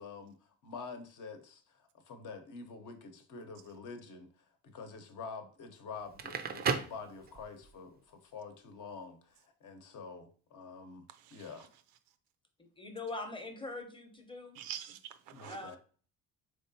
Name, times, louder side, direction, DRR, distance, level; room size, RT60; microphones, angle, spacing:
voice 1, 0.0-11.7 15.3-15.8, left 4 dB, 50° left, 0.8 m, -47 dB
Crackle, 6.0-7.7, right 6 dB, 25° right, 0.4 m, -35 dB
voice 2, 11.1-11.7 14.5-15.8, right 10 dB, 85° right, 0.5 m, -46 dB
voice 3, 12.8-14.6 15.4-15.7, left 2 dB, 15° left, 0.8 m, -42 dB
3.7 x 3.2 x 2.7 m
supercardioid pair, 80°, 39 cm